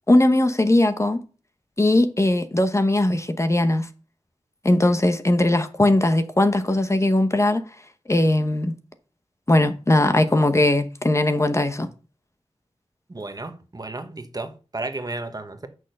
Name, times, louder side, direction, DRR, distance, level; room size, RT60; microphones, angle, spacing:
voice 1, 0.1-1.2 1.8-3.9 4.6-7.7 8.1-8.7 9.5-11.9, left 1 dB, 25° left, 0.9 m, -19 dB
voice 2, 13.1-15.7, right 2 dB, 35° right, 1.2 m, -33 dB
6.3 x 6.3 x 6.5 m
wide cardioid pair, 65°, 11 cm